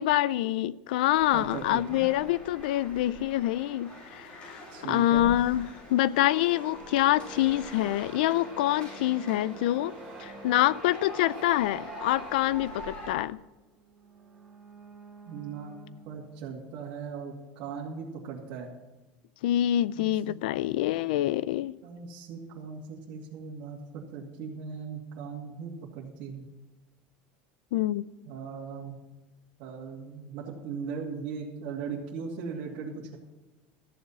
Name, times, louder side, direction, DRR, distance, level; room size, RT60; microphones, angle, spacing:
voice 1, 0.0-9.9 10.2-13.4 19.4-21.8 27.7-28.0, left 14 dB, 85° left, 0.4 m, -26 dB
sound 1, 1.1-13.1, left 1 dB, 25° left, 4.8 m, -45 dB
voice 2, 1.3-2.0 4.7-5.3 15.3-15.8 16.1-18.7 20.0-20.3 21.8-26.5 28.2-29.0 29.6-33.2, right 6 dB, 50° right, 2.5 m, -38 dB
sound 2, 6.1-16.4, right 4 dB, 15° right, 1.5 m, -47 dB
14.5 x 7.2 x 7.4 m
cardioid pair, 175°, 5 cm